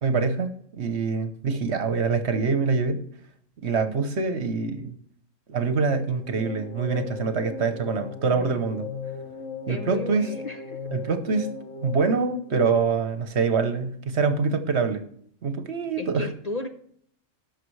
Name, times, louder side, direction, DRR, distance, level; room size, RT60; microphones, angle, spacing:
voice 1, 0.0-3.0 3.6-4.9 5.5-8.9 9.7-10.2 10.9-11.5 11.8-15.1 15.4-16.3, right 4 dB, 60° right, 9 dB, 1.2 m, -25 dB
sound 1, 6.0-13.3, left 5 dB, 80° left, 1.4 m, -38 dB
voice 2, 8.2-8.7 9.7-10.9 16.0-16.7, left 1 dB, 40° left, 4 dB, 0.7 m, -35 dB
17.5 x 6.6 x 3.2 m, 0.63 s
omnidirectional pair, 1.3 m